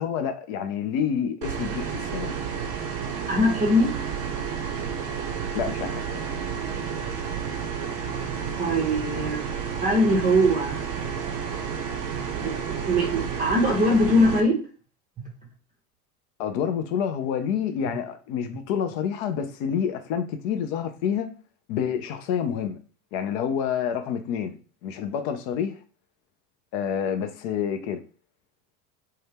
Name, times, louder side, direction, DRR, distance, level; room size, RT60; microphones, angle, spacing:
voice 1, 0.0-2.4 5.5-6.3 16.4-21.3 21.7-22.8 23.1-25.8 26.7-28.0, left 8 dB, 40° left, 0.4 m, -28 dB
sound 1, 1.4-14.4, right 7 dB, 50° right, 0.7 m, -31 dB
voice 2, 3.2-4.0 8.5-10.8 12.4-14.6, equal, 15° right, 0.7 m, -22 dB
2.6 x 2.1 x 3.4 m
figure-of-eight pair, 80°, 47 cm